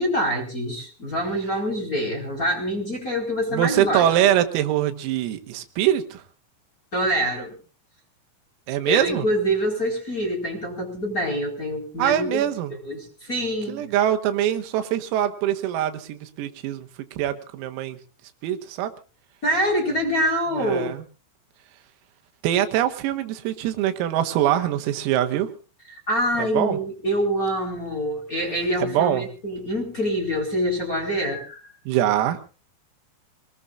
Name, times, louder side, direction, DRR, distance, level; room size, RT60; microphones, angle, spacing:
voice 1, 0.0-4.1 6.9-7.6 8.8-12.4 12.8-13.9 19.4-21.0 25.9-31.7, equal, 20° left, 1 dB, 4.2 m, -25 dB
voice 2, 3.5-6.2 8.7-9.3 12.0-12.7 13.7-16.9 17.2-18.0 18.4-18.9 20.5-21.0 22.4-25.5 26.4-26.8 28.8-29.3 31.9-32.4, right 11 dB, 90° right, 7 dB, 4.1 m, -23 dB
26.0 x 19.5 x 2.5 m, 0.37 s
omnidirectional pair, 5.9 m